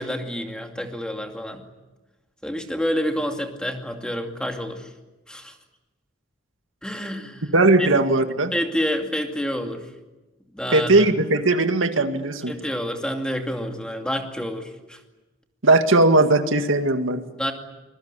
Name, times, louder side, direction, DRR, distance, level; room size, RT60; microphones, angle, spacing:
voice 1, 0.0-1.6 2.4-4.9 5.3-5.5 6.8-7.5 7.8-7.9 8.5-9.9 10.5-11.1 12.5-15.0 17.4-17.5, equal, 5° left, 4 dB, 2.5 m, -28 dB
voice 2, 7.5-8.5 10.7-12.5 15.6-17.2, right 2 dB, 80° right, 7 dB, 2.0 m, -18 dB
24.5 x 22.0 x 9.9 m, 1.1 s
head